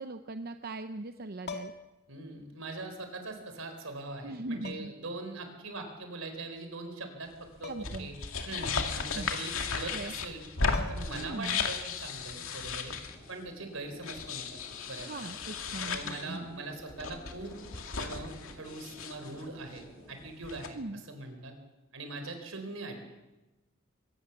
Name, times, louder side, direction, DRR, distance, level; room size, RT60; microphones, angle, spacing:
voice 1, 0.0-1.7 4.2-4.9 7.7-8.1 9.1-9.3 9.9-10.1 11.1-11.7 15.0-16.6 20.7-21.0, right 2 dB, 50° right, 8 dB, 0.8 m, -40 dB
sound 1, 1.4-2.0 3.4-3.5 4.6-5.1 7.6-8.1 8.4-8.5 10.3-10.4 10.7-11.3 13.3-13.5, left 4 dB, 55° left, 1.7 m, -43 dB
voice 2, 2.1-7.3 7.6-7.7 8.0-8.1 8.5-10.4 10.9-12.9 13.3-14.5 14.8-15.3 15.8-17.6 18.0-21.5 21.9-23.0, right 2 dB, 75° right, 6 dB, 4.4 m, -42 dB
sound 2, 7.6-13.3 14.0-16.4 16.8-19.5 19.8-19.9 20.2-20.7, left 4 dB, 80° left, 2.3 m, -35 dB
sound 3, 13.1-20.3, equal, 5° left, 4.8 m, -54 dB
24.0 x 17.5 x 7.3 m, 1.1 s
head